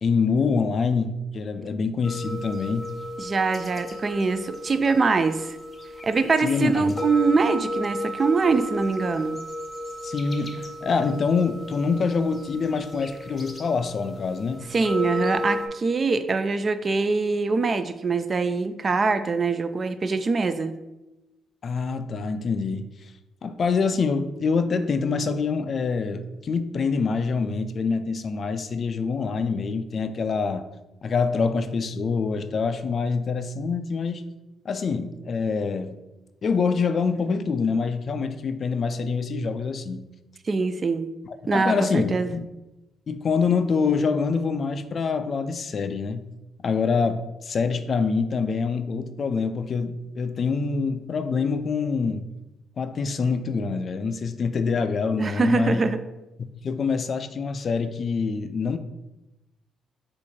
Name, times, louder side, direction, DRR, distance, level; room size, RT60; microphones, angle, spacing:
voice 1, 0.0-2.9 6.4-6.9 10.0-14.7 21.6-22.9 23.4-30.7 31.0-34.2 34.6-36.0 36.4-40.1 41.2-42.5 43.1-46.3 46.6-52.3 52.8-55.8 56.4-58.8, left 5 dB, 50° left, 10 dB, 0.3 m, -25 dB
sound 1, 2.0-15.7, left 1 dB, 25° left, 0.7 m, -34 dB
voice 2, 3.2-5.6 6.0-9.4 14.7-20.8 40.5-41.1 41.5-42.3 55.2-56.0, right 4 dB, 35° right, 11 dB, 0.3 m, -23 dB
4.0 x 2.5 x 4.6 m, 0.99 s
cardioid pair, 90°, 0 cm